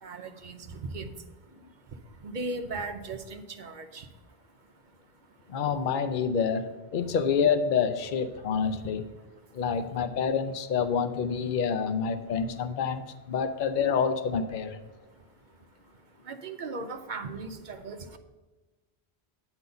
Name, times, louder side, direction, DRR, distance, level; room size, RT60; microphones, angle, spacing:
voice 1, 0.0-1.1 2.2-4.1 16.3-18.2, right 3 dB, 50° right, 8 dB, 0.8 m, -37 dB
voice 2, 5.5-9.0 9.5-14.7, left 6 dB, 55° left, 9 dB, 0.7 m, -27 dB
8.9 x 4.0 x 6.8 m, 1.2 s
omnidirectional pair, 1.1 m